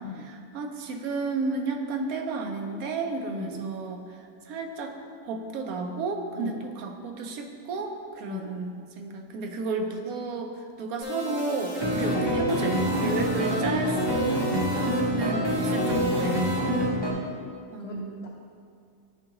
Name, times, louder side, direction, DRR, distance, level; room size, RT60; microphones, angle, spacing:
voice 1, 0.2-5.0 5.2-14.4 15.1-16.5 17.7-18.2, right 3 dB, 75° right, 4 dB, 1.0 m, -32 dB
voice 2, 8.3-8.6 12.1-12.3 16.7-17.3 17.8-18.3, left 6 dB, 80° left, 0 dB, 0.5 m, -39 dB
sound 1, 11.0-16.8, right 2 dB, 25° left, 1.5 m, -33 dB
sound 2, 11.8-17.1, equal, 45° right, 0.3 m, -26 dB
10.5 x 3.6 x 2.9 m, 2.3 s
omnidirectional pair, 1.6 m